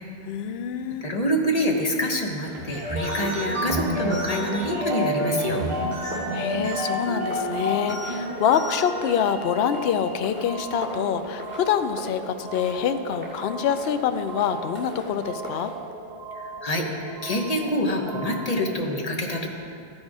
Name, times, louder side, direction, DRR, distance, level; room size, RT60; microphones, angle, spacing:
voice 1, 0.2-1.1 6.3-15.7, left 8 dB, 65° left, 9 dB, 0.8 m, -26 dB
voice 2, 1.0-5.7 16.4-19.5, equal, 35° left, 1 dB, 1.0 m, -26 dB
sound 1, 1.8-15.8, equal, 10° right, 1.9 m, -41 dB
sound 2, 2.6-10.8, equal, 25° right, 1.3 m, -30 dB
sound 3, 4.8-18.7, right 3 dB, 75° right, 1.2 m, -39 dB
13.0 x 6.3 x 4.8 m, 2.6 s
omnidirectional pair, 1.2 m